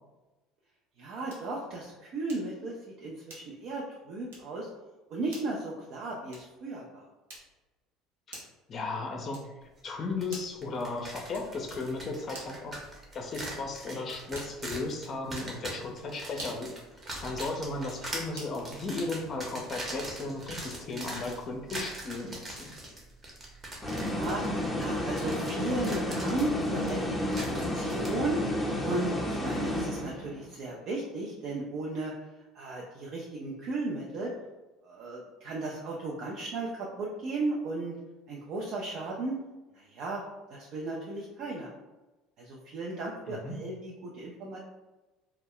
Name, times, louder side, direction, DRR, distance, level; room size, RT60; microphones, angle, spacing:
voice 1, 1.0-4.7 5.1-7.0 24.0-24.4 24.7-28.4 28.8-32.1 32.5-34.3 34.8-38.0 38.3-39.4 39.7-40.2 40.5-41.7 42.4-44.6, right 2 dB, 60° right, -3 dB, 0.4 m, -35 dB
sound 1, 1.3-1.6 2.3-2.6 3.3-3.7 4.3-4.6 5.3-5.6 6.3-6.6 7.3-7.7 8.3-8.7 9.3-9.7 10.3-10.7 11.3-11.7 12.3-12.7 13.3-13.7 14.3-14.7 15.3-15.6 16.3-16.7 17.3-17.6 18.3-18.6, right 1 dB, 85° right, 0.8 m, -47 dB
voice 2, 8.3-9.4 9.8-12.7 13.1-16.7 17.2-22.7 43.3-43.5, left 3 dB, 40° left, 3 dB, 0.5 m, -35 dB
sound 2, 10.2-10.3 10.6-28.1, right 1 dB, 30° right, 0.8 m, -42 dB
sound 3, 23.8-30.4, left 1 dB, ahead, 0.7 m, -31 dB
2.2 x 2.1 x 3.5 m, 1.1 s
hypercardioid pair, 80°, 0 cm